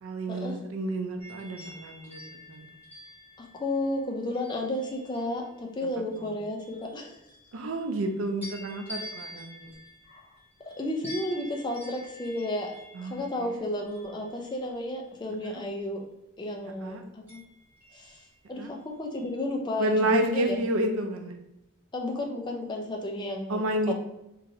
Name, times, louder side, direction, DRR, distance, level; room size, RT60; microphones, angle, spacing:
voice 1, 0.0-2.7 5.8-5.9 6.2-6.3 7.5-9.7 12.9-13.6 15.4-15.6 16.8-17.0 18.6-18.7 19.8-21.3 23.5-23.9, right 1 dB, 80° right, 5 dB, 0.4 m, -30 dB
sound 1, 1.2-5.6 6.1-8.0 8.4-15.4 17.3-18.7 19.1-19.4, left 1 dB, 10° right, 1.0 m, -48 dB
voice 2, 3.4-7.2 10.1-10.2 10.7-12.7 13.0-16.1 16.4-17.4 17.9-18.2 18.5-20.6 21.9-23.9, left 1 dB, 20° left, 0 dB, 0.4 m, -32 dB
3.0 x 2.5 x 2.6 m, 0.88 s
head